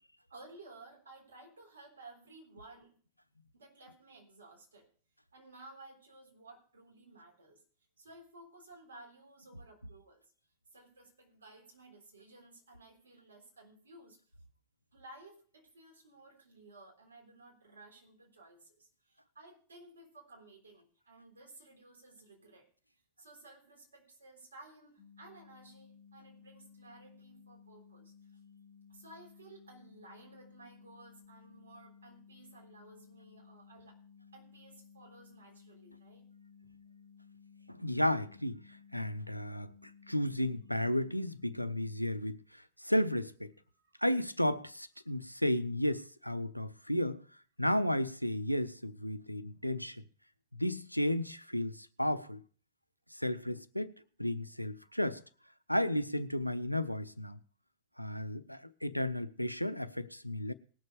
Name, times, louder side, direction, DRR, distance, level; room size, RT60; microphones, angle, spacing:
voice 1, 0.3-3.0 3.5-4.9 5.3-7.6 8.0-10.2 10.7-14.2 14.9-22.7 23.2-28.1 28.9-34.0 34.3-36.3 36.6-36.7 43.7-44.0 45.1-45.2, right 2 dB, 70° right, 3.7 m, -56 dB
sound 1, 25.0-42.0, left 6 dB, 40° right, 4.2 m, -58 dB
voice 2, 37.7-38.6 38.9-43.5 44.0-47.2 47.6-50.0 50.5-52.4 53.1-53.9 54.2-55.2 55.7-57.4 58.0-60.5, left 1 dB, 90° left, 0.5 m, -33 dB
19.0 x 6.6 x 4.9 m
figure-of-eight pair, 90°, 0 cm